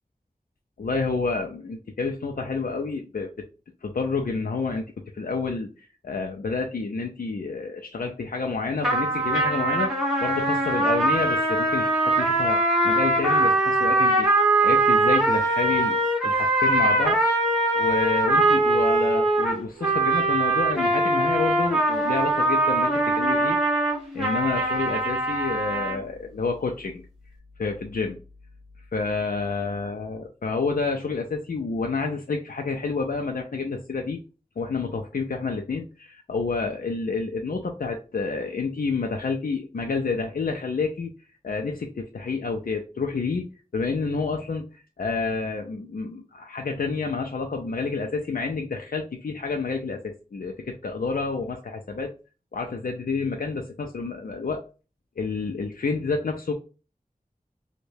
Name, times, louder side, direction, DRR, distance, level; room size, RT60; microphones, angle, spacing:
voice 1, 0.8-3.3 3.8-4.9 5.1-10.0 10.2-14.3 14.6-16.0 16.2-23.6 24.1-27.0 27.6-28.2 28.9-34.2 34.6-41.1 41.4-43.5 43.7-52.1 52.5-54.6 55.2-56.5, left 4 dB, 75° left, 2 dB, 0.4 m, -29 dB
sound 1, 8.8-26.0, right 2 dB, 5° right, 1.2 m, -22 dB
4.7 x 2.1 x 2.6 m, 0.34 s
wide cardioid pair, 55°, 15 cm